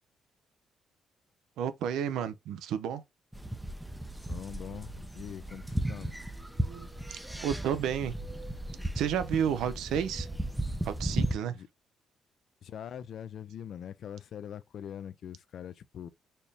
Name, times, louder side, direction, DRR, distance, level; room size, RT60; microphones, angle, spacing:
voice 1, 1.6-3.0 6.7-6.9 7.4-8.1 9.0-10.3 10.8-11.6, right 9 dB, 85° right, 0.5 m, -31 dB
sound 1, 3.3-11.4, right 1 dB, 5° right, 0.5 m, -35 dB
voice 2, 4.3-6.2 11.5-11.7 12.6-16.1, left 9 dB, 65° left, 0.4 m, -43 dB
4.3 x 2.0 x 3.3 m
cardioid pair, 90°, 0 cm